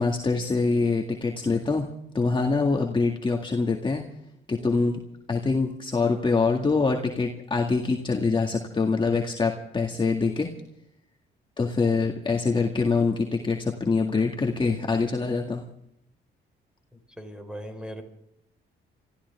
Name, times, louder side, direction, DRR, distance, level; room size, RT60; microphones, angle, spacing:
voice 1, 0.0-1.9 2.1-4.0 4.5-5.0 5.3-10.5 11.6-15.6, left 4 dB, 25° left, 1 dB, 2.0 m, -24 dB
voice 2, 16.9-18.0, equal, 5° right, 6 dB, 4.5 m, -39 dB
26.0 x 15.0 x 3.5 m, 0.76 s
cardioid pair, 90°, 20 cm